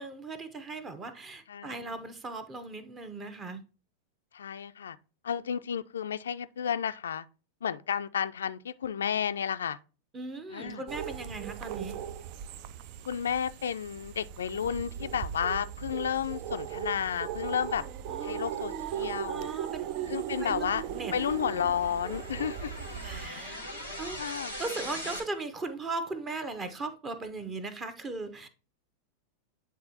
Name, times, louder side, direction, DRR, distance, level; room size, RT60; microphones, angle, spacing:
voice 1, 0.0-3.6 10.1-12.0 18.1-21.1 23.0-23.6 24.0-28.5, right 3 dB, 20° right, 0.9 m, -38 dB
voice 2, 4.3-5.0 5.2-7.2 7.6-9.8 10.5-10.8 13.0-17.8 18.2-19.5 20.1-20.8 21.1-22.7 24.2-24.5, left 8 dB, 65° left, 0.3 m, -32 dB
sound 1, 10.9-23.3, right 10 dB, 45° right, 0.4 m, -38 dB
sound 2, 18.4-25.2, equal, 75° right, 2.3 m, -42 dB
9.7 x 3.6 x 2.8 m
figure-of-eight pair, 90°, 0 cm